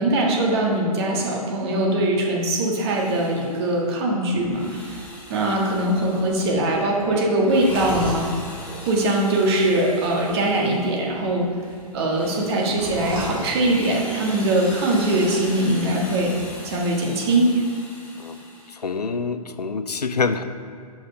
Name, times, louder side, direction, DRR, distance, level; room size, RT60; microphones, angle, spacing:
voice 1, 0.0-8.3 8.8-11.5 11.9-16.3 16.6-17.6, right 1 dB, 40° right, -1 dB, 1.5 m, -22 dB
Drill, 2.8-3.9 4.4-6.8 7.3-11.0 11.5-19.0, left 1 dB, 5° left, 1.4 m, -41 dB
sound 1, 4.4-16.5, right 1 dB, 25° right, 1.9 m, -40 dB
voice 2, 18.7-20.4, left 4 dB, 85° left, 10 dB, 0.5 m, -26 dB
5.9 x 5.5 x 5.4 m, 2.4 s
figure-of-eight pair, 115°, 20 cm